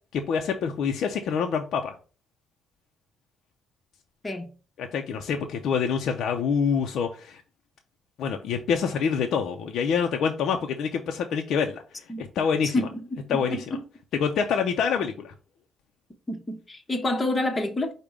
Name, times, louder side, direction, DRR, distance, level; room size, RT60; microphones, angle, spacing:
voice 1, 0.1-1.9 4.8-7.4 8.2-12.7 13.3-13.6 14.2-15.3, left 6 dB, 75° left, 0.5 m, -26 dB
voice 2, 12.6-13.8 16.3-17.9, left 2 dB, 25° left, 0.9 m, -28 dB
5.1 x 2.2 x 4.7 m
cardioid pair, 90°, 0 cm